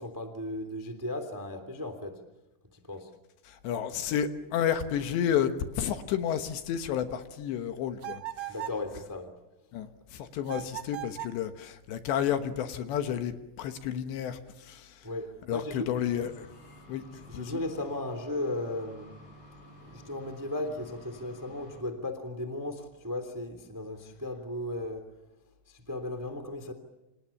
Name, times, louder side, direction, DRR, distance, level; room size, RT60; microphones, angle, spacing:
voice 1, 0.0-2.2 2.7-3.1 8.5-9.3 15.0-16.0 17.1-19.1 19.8-25.1 25.7-26.7, left 1 dB, 5° right, 8 dB, 1.5 m, -36 dB
voice 2, 3.5-8.5 9.7-15.1 15.5-16.5 16.9-17.0 17.3-17.6, left 9 dB, 70° left, 8 dB, 3.3 m, -31 dB
sound 1, 8.0-8.8 10.4-11.4, right 14 dB, 70° right, 1.9 m, -38 dB
sound 2, 16.0-21.8, equal, 40° left, 6.7 m, -52 dB
29.0 x 27.5 x 7.2 m, 0.97 s
omnidirectional pair, 5.5 m